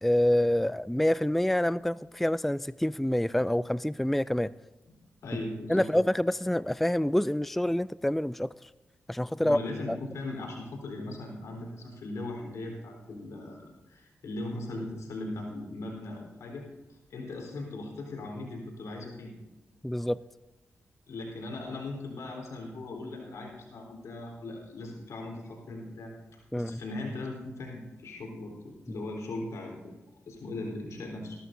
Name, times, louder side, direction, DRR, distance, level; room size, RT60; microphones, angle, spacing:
voice 1, 0.0-4.5 5.7-8.5 9.1-9.6 9.9-10.0 19.8-20.2 26.5-26.8, left 1 dB, 5° left, 17 dB, 0.3 m, -27 dB
voice 2, 5.2-5.9 9.4-19.3 21.1-26.1 26.5-30.0 30.3-31.4, left 2 dB, 80° left, -1 dB, 3.8 m, -39 dB
20.0 x 12.5 x 2.7 m, 1.1 s
cardioid pair, 45°, 5 cm